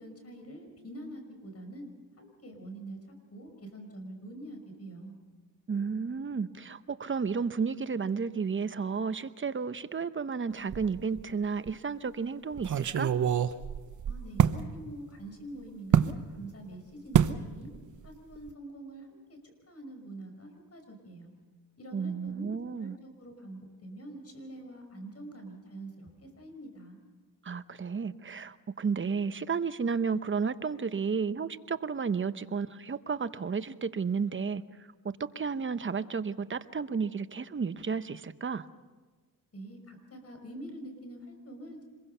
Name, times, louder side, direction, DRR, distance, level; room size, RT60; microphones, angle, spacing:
voice 1, 0.0-1.9 2.2-3.0 3.3-5.2 14.1-17.7 18.0-19.4 19.7-21.3 21.8-27.0 39.5-41.8, right 1 dB, 45° left, 5 dB, 5.7 m, -45 dB
voice 2, 5.7-13.1 21.9-23.0 27.4-38.7, right 5 dB, 35° right, 12 dB, 0.9 m, -32 dB
sound 1, 10.7-11.3 11.7-11.8 12.6-14.6 15.9-16.2 17.1-17.4 17.7-18.1 18.3-18.5, right 8 dB, 55° right, 1.0 m, -26 dB
26.0 x 22.0 x 5.7 m, 1.3 s
cardioid pair, 75°, 35 cm